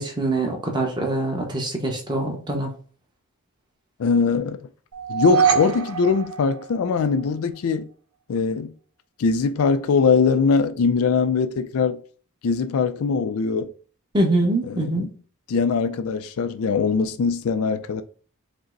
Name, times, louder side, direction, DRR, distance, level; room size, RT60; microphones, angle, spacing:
voice 1, 0.0-2.7 14.1-15.1, right 2 dB, 20° right, 0.9 m, -24 dB
voice 2, 4.0-4.7 5.1-7.9 8.3-8.7 9.2-12.0 12.4-13.7 14.7-15.1 15.5-18.0, left 5 dB, 70° left, 0.4 m, -21 dB
sound 1, 4.9-7.2, right 7 dB, 70° right, 1.0 m, -24 dB
5.1 x 2.1 x 3.8 m
head